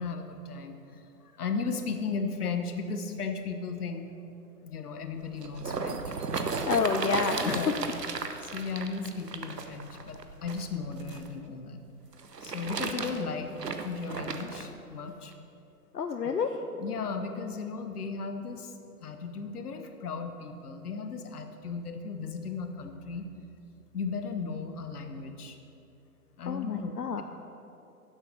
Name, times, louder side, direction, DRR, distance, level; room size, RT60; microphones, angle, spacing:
voice 1, 0.0-4.1 4.6-6.1 6.8-6.9 7.4-7.8 8.4-11.8 12.4-15.3 16.8-18.7 19.0-23.2 23.9-25.6 26.4-27.2, left 5 dB, 70° left, 6 dB, 1.3 m, -36 dB
sound 1, 5.2-11.3 12.1-14.7 15.3-15.4, right 4 dB, 90° right, 1.0 m, -35 dB
voice 2, 6.6-7.6 15.9-16.6 26.5-27.2, left 5 dB, 90° left, 6 dB, 0.7 m, -29 dB
10.5 x 8.0 x 6.1 m, 2.8 s
figure-of-eight pair, 125°, 47 cm